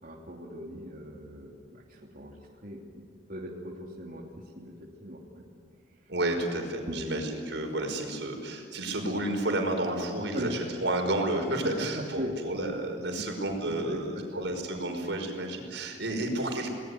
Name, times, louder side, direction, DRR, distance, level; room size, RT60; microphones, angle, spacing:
voice 1, 0.0-3.0 3.3-4.2 4.5-5.5 6.9-7.0 10.2-10.5 11.6-12.4 13.2-13.3 13.7-14.4, equal, 50° right, -2 dB, 3.0 m, -39 dB
voice 2, 6.1-16.7, right 1 dB, 80° right, 3 dB, 5.3 m, -31 dB
29.0 x 19.5 x 9.6 m, 2.1 s
head